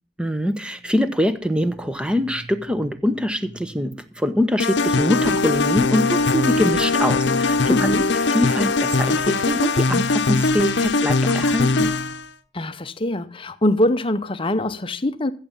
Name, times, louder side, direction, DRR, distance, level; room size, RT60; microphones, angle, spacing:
voice 1, 0.2-7.9 8.3-11.9, left 1 dB, 5° right, 0.8 m, -23 dB
sound 1, 4.6-12.2, left 3 dB, 65° left, 0.8 m, -20 dB
voice 2, 7.7-8.1 12.5-15.3, left 1 dB, 30° left, 0.7 m, -23 dB
14.5 x 7.3 x 5.3 m
head